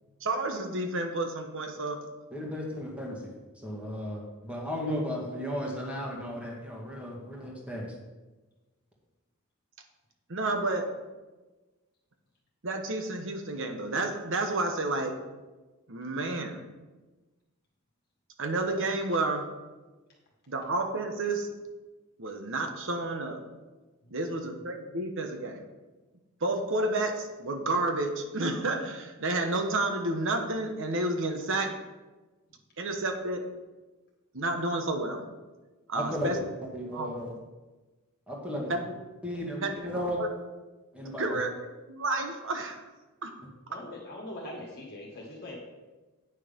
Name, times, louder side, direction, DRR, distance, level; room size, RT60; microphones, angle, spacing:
voice 1, 0.2-2.0 10.3-10.9 12.6-15.1 15.9-16.6 18.4-19.5 20.5-21.5 22.2-23.4 24.1-25.6 26.4-31.7 32.8-33.4 34.3-35.2 35.9-36.4 36.9-37.1 38.7-38.8 39.6-39.7 40.2-40.3 41.2-41.5 41.9-42.8 43.2-43.3, right 2 dB, 60° right, 5 dB, 1.2 m, -30 dB
voice 2, 2.3-3.2 3.6-7.9 35.9-36.4 36.7-37.3 38.3-38.7 39.2-40.2 40.9-41.4, equal, 5° right, -2 dB, 1.9 m, -34 dB
voice 3, 43.7-45.6, left 1 dB, 45° left, -3 dB, 1.8 m, -42 dB
9.3 x 6.2 x 5.3 m, 1.2 s
head